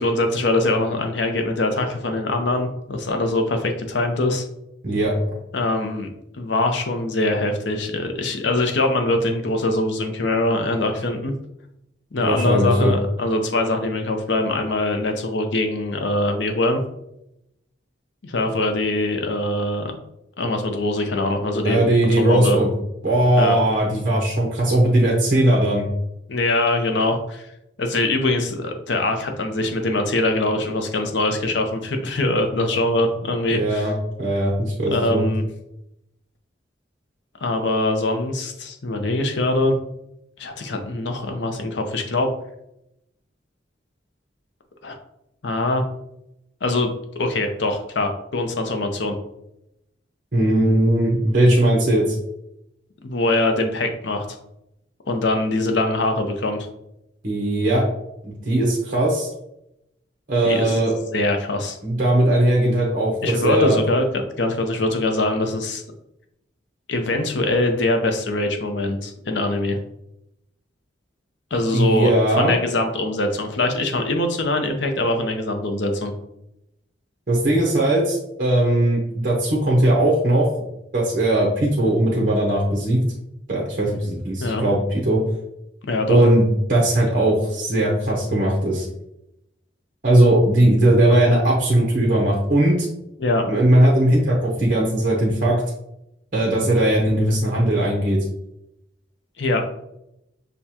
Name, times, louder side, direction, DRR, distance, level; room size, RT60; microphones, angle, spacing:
voice 1, 0.0-4.4 5.5-6.1 6.3-11.3 12.1-16.8 18.2-19.9 20.4-21.8 22.2-22.6 23.4-23.6 26.3-27.4 27.8-33.9 34.9-35.4 37.4-39.7 40.4-42.3 44.8-45.0 45.4-45.8 46.6-46.9 47.2-49.1 53.0-54.3 55.1-56.7 60.4-61.8 63.2-64.0 64.4-65.8 66.9-69.8 71.5-76.1 84.4-84.6 85.8-86.2 93.2-93.5 99.4-99.6, left 2 dB, 75° left, 5 dB, 0.6 m, -23 dB
voice 2, 12.2-12.9 21.6-22.7 23.0-25.9 33.5-35.3 50.3-52.1 57.2-57.8 58.2-59.3 60.3-60.9 61.8-63.8 71.7-72.5 77.3-80.5 80.9-83.0 83.5-85.2 86.1-88.9 90.0-92.9 93.5-95.6 96.3-98.2, right 1 dB, 45° right, -3 dB, 0.8 m, -19 dB
6.6 x 2.3 x 2.8 m, 0.83 s
head